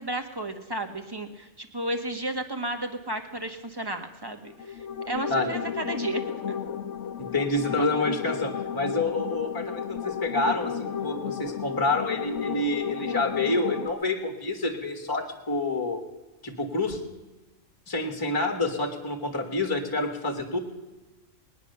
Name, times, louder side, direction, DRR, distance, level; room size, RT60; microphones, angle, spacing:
voice 1, 0.0-4.7 5.1-6.2 6.5-6.6, right 1 dB, 20° right, 6 dB, 1.3 m, -33 dB
sound 1, 4.4-13.9, left 7 dB, 65° left, 1.1 m, -33 dB
voice 2, 7.2-16.0 16.4-17.0 17.9-20.6, left 2 dB, 15° left, 4 dB, 1.6 m, -28 dB
20.5 x 10.0 x 6.8 m, 1.1 s
omnidirectional pair, 1.4 m